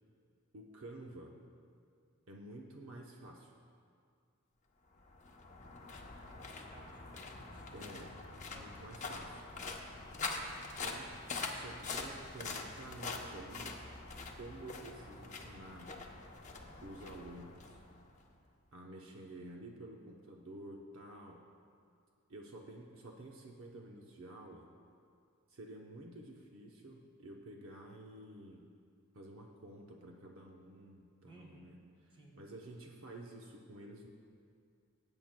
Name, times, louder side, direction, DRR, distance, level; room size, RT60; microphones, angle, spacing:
voice 1, 0.5-1.4 2.3-3.5 7.7-8.2 8.5-9.4 10.8-11.1 11.5-13.8 14.4-15.9 16.8-17.8 18.7-21.4 22.3-24.7 25.5-28.7 29.1-34.1, right 1 dB, 65° right, 0 dB, 0.8 m, -51 dB
sound 1, 4.9-18.3, left 3 dB, 35° left, 0.8 m, -44 dB
voice 2, 6.3-7.8 8.5-8.8 31.3-31.7 32.1-32.3, right 1 dB, 25° right, -1 dB, 1.6 m, -59 dB
19.0 x 8.9 x 2.2 m, 2.3 s
head